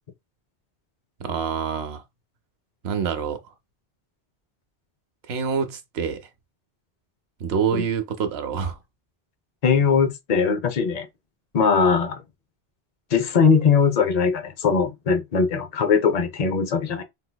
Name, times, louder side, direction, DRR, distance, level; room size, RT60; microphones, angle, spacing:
voice 1, 1.2-2.0 2.8-3.4 5.3-6.3 7.4-8.8, right 6 dB, 80° right, 0.9 m, -26 dB
voice 2, 9.6-11.1 11.5-12.2 13.1-17.0, left 5 dB, 45° left, 0.7 m, -20 dB
3.6 x 2.8 x 2.2 m
omnidirectional pair, 1.0 m